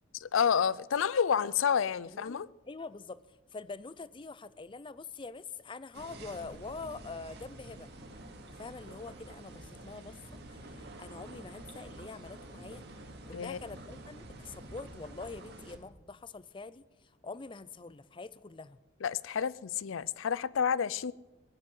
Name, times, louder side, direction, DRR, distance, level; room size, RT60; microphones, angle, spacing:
voice 1, 0.1-2.5 13.3-13.6 19.0-21.1, left 7 dB, 85° left, 0.5 m, -29 dB
voice 2, 2.1-2.4 2.7-7.9 8.6-10.2 10.5-12.8 13.3-18.8, left 4 dB, 25° left, 0.5 m, -45 dB
sound 1, 5.9-15.8, right 1 dB, 55° right, 2.4 m, -48 dB
17.5 x 8.7 x 9.5 m
head